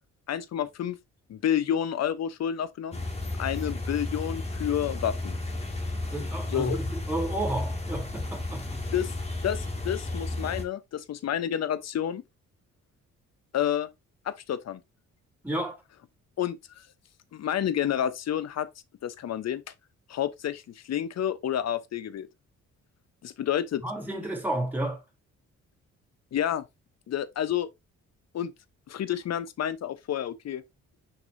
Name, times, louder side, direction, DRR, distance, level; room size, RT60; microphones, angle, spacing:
voice 1, 0.3-1.0 1.3-3.0 3.4-5.4 6.5-6.8 8.9-9.1 9.4-12.2 13.5-13.9 14.2-14.8 16.4-16.8 17.3-18.7 19.0-19.6 20.1-22.3 23.2-23.8 26.3-26.6 27.1-27.7 28.3-28.5 28.9-30.6, left 10 dB, 60° left, 0.9 m, -29 dB
sound 1, 2.9-10.6, left 2 dB, 20° left, 2.2 m, -33 dB
voice 2, 6.1-8.8 15.4-15.8 23.8-25.0, right 1 dB, 5° right, 3.5 m, -31 dB
6.6 x 6.0 x 2.7 m
cardioid pair, 90°, 30 cm